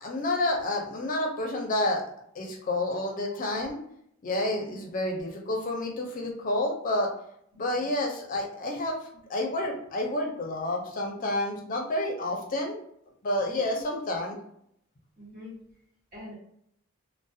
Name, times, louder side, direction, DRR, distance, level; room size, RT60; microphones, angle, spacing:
voice 1, 0.0-2.0 2.4-3.8 4.2-7.1 7.6-9.0 9.3-12.8 13.2-14.4, left 1 dB, 40° left, 1 dB, 0.5 m, -29 dB
voice 2, 4.5-4.8 7.7-7.9 13.5-13.8 15.2-15.5 16.1-16.3, left 2 dB, 45° right, -8 dB, 1.2 m, -45 dB
2.3 x 2.0 x 2.6 m, 0.71 s
head